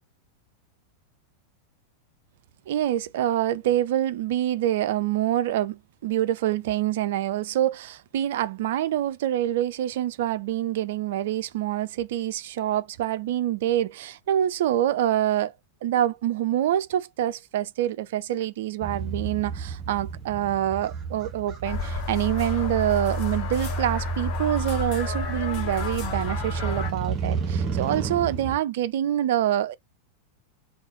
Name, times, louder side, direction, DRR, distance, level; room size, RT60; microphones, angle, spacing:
voice 1, 2.7-15.5 15.8-29.8, right 12 dB, 55° right, 0.3 m, -26 dB
Motorcycle, 18.8-28.6, right 6 dB, 30° right, 1.0 m, -33 dB
sound 1, 21.6-26.9, left 1 dB, 40° left, 1.2 m, -30 dB
3.9 x 2.3 x 3.7 m
figure-of-eight pair, 90°, 0 cm